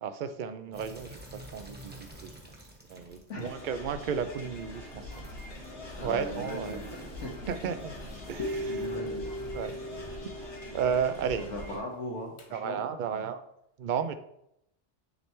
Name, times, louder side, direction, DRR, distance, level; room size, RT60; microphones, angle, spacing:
voice 1, 0.0-1.2 1.5-2.3 2.9-5.2 6.0-6.8 7.5-7.9 8.3-8.9 9.5-9.7 10.5-11.4 12.5-13.4 13.8-14.1, right 7 dB, 60° right, 10 dB, 0.5 m, -33 dB
sound 1, 0.7-10.2, right 1 dB, 10° right, 0.9 m, -49 dB
sound 2, 3.4-11.8, left 2 dB, 55° left, 1.4 m, -44 dB
voice 2, 6.0-7.3 8.7-9.3 11.4-12.8, left 1 dB, 75° left, -1 dB, 1.4 m, -38 dB
sound 3, 8.4-12.5, equal, 35° left, 0.6 m, -38 dB
9.5 x 3.2 x 3.0 m, 0.77 s
omnidirectional pair, 1.3 m